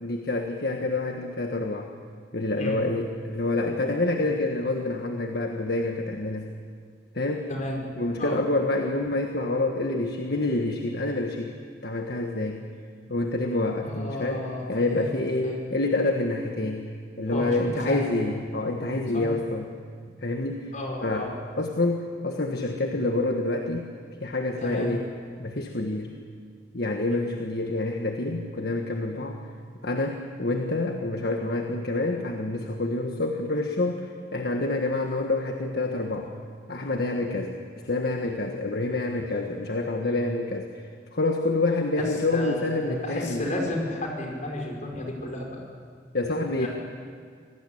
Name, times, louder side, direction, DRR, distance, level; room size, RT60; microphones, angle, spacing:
voice 1, 0.0-1.9 2.3-6.5 7.1-7.5 8.0-11.5 11.8-12.6 13.1-16.8 17.2-19.7 20.2-20.7 21.0-23.9 24.2-25.1 25.4-26.1 26.7-29.4 29.8-36.3 36.7-37.5 37.8-40.8 41.1-43.5 46.1-46.7, left 2 dB, 65° left, 3 dB, 1.6 m, -27 dB
voice 2, 7.5-7.8 8.2-8.4 13.8-15.6 17.3-18.1 19.1-19.3 20.1-20.2 20.7-21.3 24.6-24.9 25.5-25.6 27.1-27.2 42.0-45.6 46.6-46.7, left 1 dB, 45° left, 0 dB, 5.3 m, -33 dB
26.5 x 19.0 x 8.6 m, 2.1 s
head